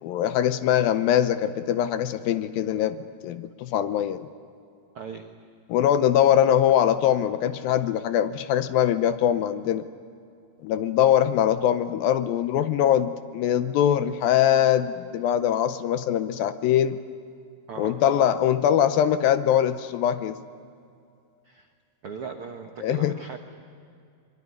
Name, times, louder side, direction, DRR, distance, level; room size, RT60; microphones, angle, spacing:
voice 1, 0.0-3.0 3.2-4.2 5.7-9.8 10.6-17.0 17.8-20.4 22.8-23.1, left 10 dB, 75° left, 11 dB, 2.4 m, -22 dB
voice 2, 4.9-5.3 17.7-18.0 21.4-21.7 22.0-23.4, right 5 dB, 70° right, 4 dB, 1.3 m, -38 dB
24.0 x 23.5 x 9.8 m, 2.4 s
omnidirectional pair, 4.5 m